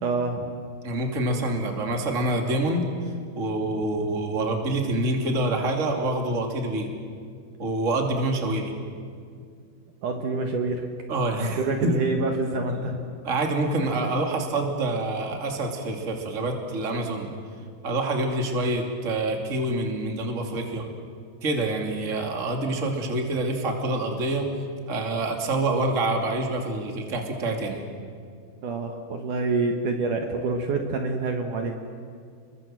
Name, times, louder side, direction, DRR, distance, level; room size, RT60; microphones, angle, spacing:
voice 1, 0.0-0.5 10.0-10.9 11.4-13.0 28.6-31.8, right 3 dB, 60° right, 4 dB, 2.7 m, -27 dB
voice 2, 0.8-2.9 3.3-6.9 7.6-8.7 11.1-12.0 13.2-17.3 17.8-20.9 21.4-24.5 24.9-27.8, right 2 dB, 25° right, 3 dB, 2.4 m, -26 dB
29.5 x 22.5 x 7.7 m, 2.2 s
omnidirectional pair, 4.5 m